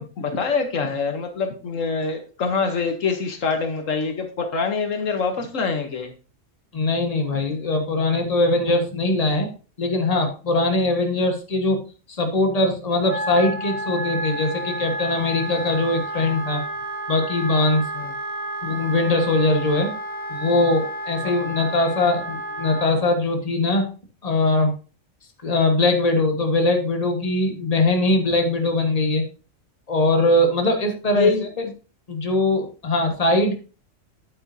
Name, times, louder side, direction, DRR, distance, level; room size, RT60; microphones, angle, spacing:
voice 1, 0.0-6.1 17.9-18.1 31.2-31.7, left 5 dB, 70° left, 6 dB, 1.4 m, -25 dB
voice 2, 6.7-9.5 9.8-11.8 12.1-16.6 17.1-17.8 18.6-19.9 20.3-23.8 24.2-24.7 25.4-29.2 29.9-31.3 32.1-33.6, left 2 dB, 30° left, 4 dB, 1.5 m, -21 dB
Wind instrument woodwind instrument, 13.0-22.9, right 1 dB, 90° left, 2.1 m, -31 dB
9.3 x 8.5 x 2.7 m, 0.36 s
omnidirectional pair, 1.4 m